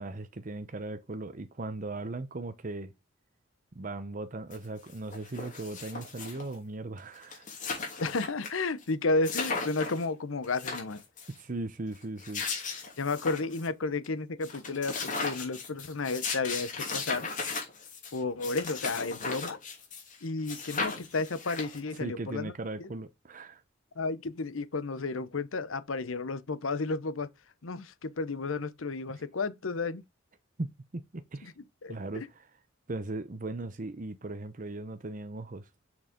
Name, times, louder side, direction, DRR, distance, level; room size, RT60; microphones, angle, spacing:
voice 1, 0.0-2.9 3.7-7.5 11.4-12.4 22.0-23.6 29.1-29.2 30.6-31.5 31.9-32.5 32.9-35.7, right 2 dB, 40° right, 0.8 m, -38 dB
sound 1, 4.5-4.6 4.9-6.5 7.0-7.1 7.2-8.5 8.8-8.9 9.2-10.0 10.4-11.3 12.0-13.7 14.0-14.1 14.4-20.2 20.5-22.0, left 4 dB, 40° left, 2.8 m, -36 dB
voice 2, 8.0-11.0 13.0-17.3 18.1-19.6 20.2-22.5 22.8-22.9 24.0-27.3 27.6-30.0 31.4-31.5 31.8-32.3, left 3 dB, 90° left, 0.8 m, -32 dB
6.4 x 6.3 x 3.6 m
head